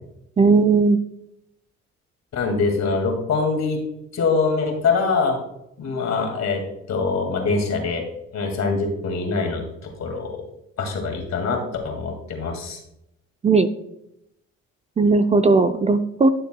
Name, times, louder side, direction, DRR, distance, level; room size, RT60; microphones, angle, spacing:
voice 1, 0.4-1.0 13.4-13.7 15.0-16.3, right 4 dB, 20° right, 9 dB, 0.4 m, -17 dB
voice 2, 2.3-3.8 4.1-5.4 5.8-8.1 8.3-10.4 10.8-12.8, left 4 dB, 60° left, 3 dB, 2.1 m, -24 dB
11.5 x 6.7 x 2.2 m, 0.82 s
cardioid pair, 90°, 30 cm